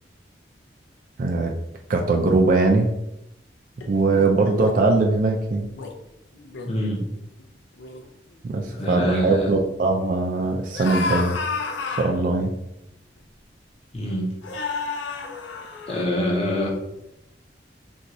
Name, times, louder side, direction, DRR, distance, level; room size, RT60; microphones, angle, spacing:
voice 1, 1.2-1.5 1.9-2.9 3.9-5.7 8.4-11.3 12.0-12.5, right 3 dB, 45° right, 2 dB, 0.3 m, -21 dB
sound 1, 3.8-4.8 5.6-5.9 6.3-6.7 7.4-7.5 7.8-8.1 8.7-9.0 10.7-12.2 13.2-13.3 14.4-16.0, left 4 dB, 85° left, 0.5 m, -31 dB
voice 2, 6.7-7.1 8.7-9.5 13.9-14.3 15.9-16.7, equal, 35° left, -2 dB, 0.7 m, -25 dB
2.6 x 2.3 x 4.0 m, 0.84 s
head